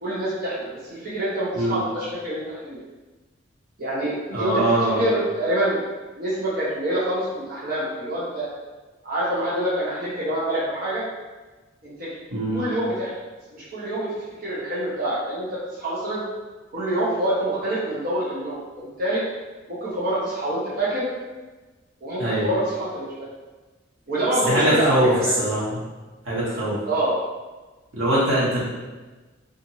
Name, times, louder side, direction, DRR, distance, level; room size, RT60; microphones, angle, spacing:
voice 1, 0.0-2.8 3.8-4.6 5.0-5.8 6.2-8.5 9.0-11.0 11.8-12.1 12.5-13.2 13.5-14.1 14.4-16.2 16.7-19.2 19.7-21.1 22.0-23.3 24.1-25.5 26.9-27.2, right 1 dB, 45° right, -9 dB, 0.7 m, -26 dB
voice 2, 4.3-5.0 12.3-12.6 22.2-22.5 24.4-25.1 25.4-25.7 26.2-26.8 27.9-28.6, right 1 dB, 85° right, -9 dB, 1.3 m, -22 dB
2.6 x 2.5 x 2.8 m, 1.2 s
head